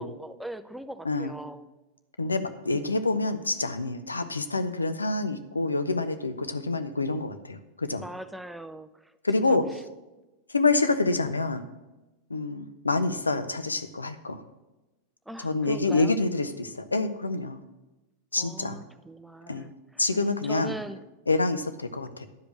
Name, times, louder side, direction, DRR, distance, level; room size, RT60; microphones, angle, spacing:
voice 1, 0.0-1.7 2.7-3.0 8.0-9.1 9.5-9.6 15.3-16.2 18.4-20.0 20.4-21.0, right 1 dB, 5° right, 11 dB, 0.4 m, -40 dB
voice 2, 2.2-8.0 9.2-9.7 10.5-11.6 12.3-14.4 15.4-17.6 18.3-18.8 19.5-19.7 20.0-20.8 21.3-22.3, left 3 dB, 80° left, 9 dB, 0.6 m, -27 dB
11.0 x 5.1 x 5.8 m, 1.0 s
figure-of-eight pair, 90°, 0 cm